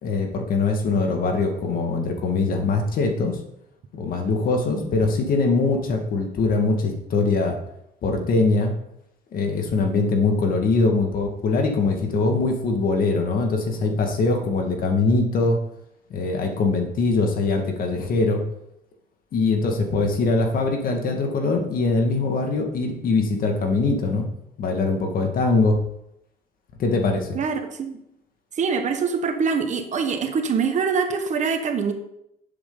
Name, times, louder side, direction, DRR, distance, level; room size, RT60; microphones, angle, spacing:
voice 1, 0.0-3.4 3.9-7.6 8.0-8.7 9.3-15.6 16.1-18.4 19.3-24.3 24.6-25.8 26.8-27.4, left 3 dB, 55° left, 3 dB, 2.0 m, -22 dB
voice 2, 27.3-28.0 28.6-31.9, right 5 dB, 45° right, 5 dB, 1.4 m, -24 dB
10.5 x 7.9 x 4.0 m, 0.80 s
cardioid pair, 110°, 17 cm